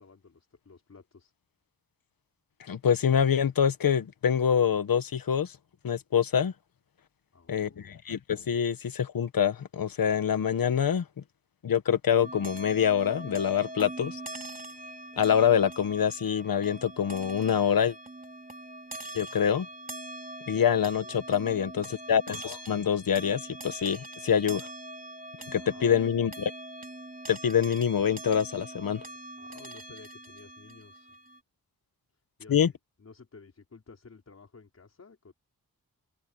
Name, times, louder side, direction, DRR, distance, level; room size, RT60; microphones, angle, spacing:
voice 1, 0.0-1.3 7.3-8.0 20.5-21.2 25.5-26.2 29.3-31.2 32.1-35.3, left 4 dB, 45° left, 4.9 m, -53 dB
voice 2, 2.7-5.6 5.8-6.5 7.5-11.2 11.6-14.2 15.2-17.9 19.1-19.7 20.5-24.7 25.5-26.3 27.3-29.0 32.5-32.7, left 8 dB, 70° left, 1.3 m, -25 dB
sound 1, 12.2-31.4, right 1 dB, 25° right, 3.6 m, -43 dB
open air
wide cardioid pair, 130°, 35 cm